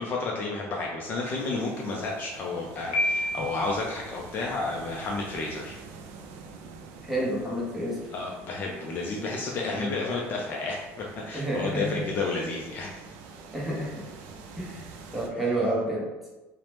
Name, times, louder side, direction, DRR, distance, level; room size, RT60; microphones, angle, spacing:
voice 1, 0.0-5.8 8.1-13.0, left 3 dB, 35° left, -1 dB, 0.3 m, -31 dB
sound 1, 1.3-15.3, right 4 dB, 85° right, 0.4 m, -47 dB
Piano, 2.9-3.9, left 1 dB, 85° left, 0.7 m, -28 dB
voice 2, 7.0-8.0 9.7-9.9 11.3-12.1 13.5-13.9 14.6-16.1, right 1 dB, 5° right, -6 dB, 0.7 m, -29 dB
2.8 x 2.0 x 3.2 m, 1.1 s
cardioid pair, 160°, 6 cm